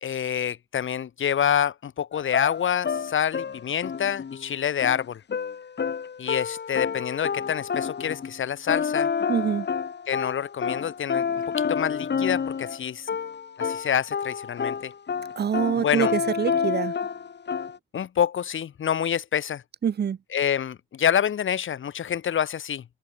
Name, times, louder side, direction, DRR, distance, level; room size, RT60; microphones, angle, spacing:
voice 1, 0.0-5.2 6.2-9.1 10.1-11.3 11.6-13.1 13.6-14.9 15.8-16.1 17.9-19.6 20.3-22.8, left 9 dB, 90° left, 0.9 m, -27 dB
sound 1, 2.1-8.4 8.7-12.8 13.1-17.8, left 6 dB, 60° left, 2.1 m, -29 dB
voice 2, 9.3-9.7 15.4-16.9 19.8-20.2, right 8 dB, 60° right, 0.6 m, -25 dB
wide cardioid pair, 145°, 20 cm